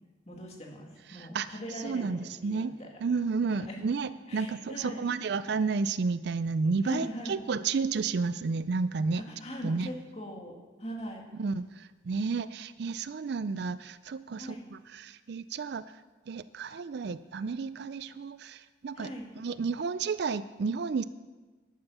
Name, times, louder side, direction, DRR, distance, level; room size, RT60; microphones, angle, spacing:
voice 1, 0.3-2.9 3.5-3.8 4.3-5.1 6.8-7.4 9.2-11.3 14.4-14.6 19.0-19.3, equal, 30° left, 0 dB, 2.1 m, -41 dB
voice 2, 1.1-2.7 3.0-9.2 9.6-9.9 11.4-15.8 16.3-19.1 19.3-21.0, right 4 dB, 55° right, 15 dB, 0.4 m, -31 dB
11.0 x 8.9 x 7.0 m, 1.3 s
head